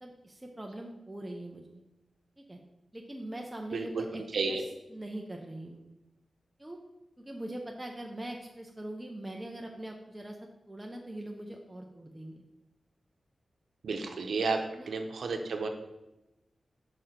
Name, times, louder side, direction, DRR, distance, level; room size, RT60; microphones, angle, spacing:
voice 1, 0.0-1.6 2.4-2.6 2.9-5.8 6.6-6.8 7.2-10.4 10.7-12.4 14.7-14.9, right 1 dB, 10° right, 0 dB, 0.6 m, -42 dB
voice 2, 3.7-4.0 4.3-4.6 13.8-15.7, right 4 dB, 85° right, 4 dB, 0.8 m, -32 dB
4.9 x 4.9 x 5.7 m, 0.98 s
wide cardioid pair, 120°, 0 cm